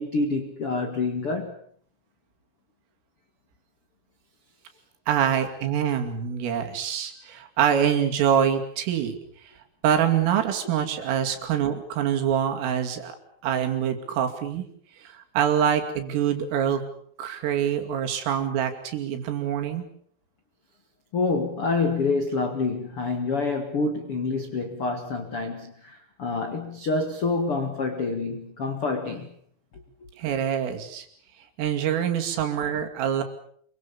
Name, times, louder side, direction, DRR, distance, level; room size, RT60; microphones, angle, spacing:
voice 1, 0.0-1.6 21.1-29.3, left 3 dB, 70° left, 1.3 m, -27 dB
voice 2, 5.1-9.2 9.8-13.2 13.4-14.6 15.0-16.8 17.2-19.9 30.2-31.1 31.6-33.2, right 9 dB, 75° right, 5.1 m, -25 dB
26.5 x 24.0 x 7.1 m
omnidirectional pair, 5.9 m